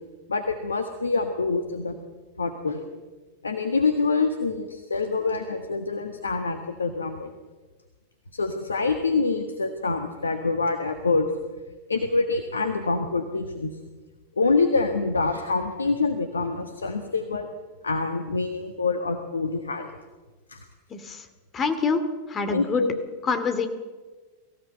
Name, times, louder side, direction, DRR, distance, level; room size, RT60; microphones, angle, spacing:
voice 1, 0.3-1.9 2.4-2.8 3.4-7.3 8.3-11.3 11.9-13.7 14.4-17.5 17.8-19.9 20.5-20.6 22.5-22.9, left 3 dB, 75° left, 7 dB, 1.4 m, -26 dB
voice 2, 20.9-21.2 21.5-22.0 22.3-22.9 23.2-23.7, left 5 dB, 25° left, 9 dB, 2.4 m, -25 dB
23.0 x 15.5 x 8.0 m, 1.3 s
figure-of-eight pair, 90°, 0 cm